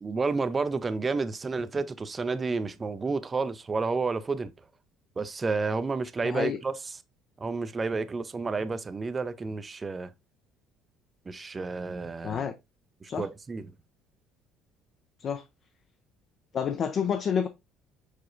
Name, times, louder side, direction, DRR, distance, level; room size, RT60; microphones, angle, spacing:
voice 1, 0.0-4.5 5.2-6.7 7.4-10.1 11.3-12.5 13.0-13.7, right 4 dB, 25° right, 0.4 m, -30 dB
voice 2, 6.2-6.6 12.2-12.5 13.1-13.3 15.2-15.4 16.5-17.5, left 7 dB, 45° left, 0.4 m, -29 dB
4.8 x 4.1 x 2.4 m
cardioid pair, 120°, 0 cm